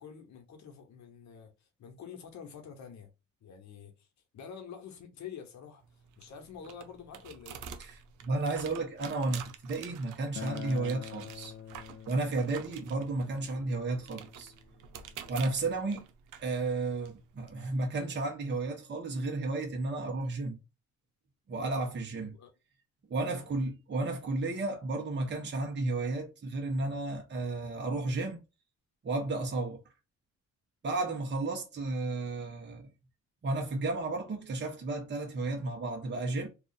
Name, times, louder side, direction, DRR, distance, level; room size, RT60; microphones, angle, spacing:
voice 1, 0.0-3.1 3.4-4.1 4.3-5.8 6.2-7.6 22.3-22.5 23.3-23.6, left 7 dB, 65° left, 1.2 m, -47 dB
sound 1, 5.8-17.5, right 8 dB, 85° right, 0.7 m, -49 dB
voice 2, 7.8-11.5 12.1-14.5 15.3-16.1 16.4-20.6 21.5-22.3 23.1-28.4 29.0-29.8 30.8-32.9 33.4-36.5, right 2 dB, 35° right, 1.1 m, -33 dB
Acoustic guitar, 10.4-15.6, left 9 dB, 50° left, 0.4 m, -46 dB
3.0 x 2.4 x 4.0 m
cardioid pair, 90°, 30 cm